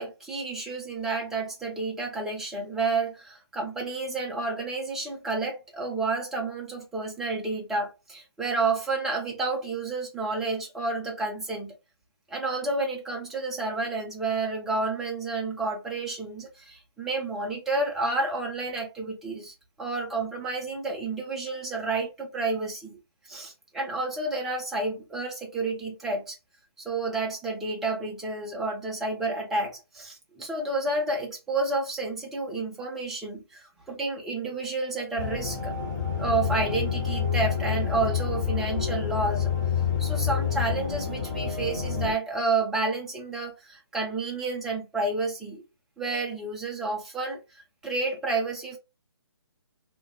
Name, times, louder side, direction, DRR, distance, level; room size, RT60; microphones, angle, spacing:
voice 1, 0.0-11.7 12.3-23.0 23.3-26.4 26.8-35.7 36.1-39.5 40.0-45.6 46.0-48.8, right 3 dB, ahead, 0.3 m, -30 dB
sound 1, 35.2-42.1, left 7 dB, 45° left, 1.0 m, -28 dB
2.2 x 2.1 x 2.8 m
figure-of-eight pair, 140°, 14 cm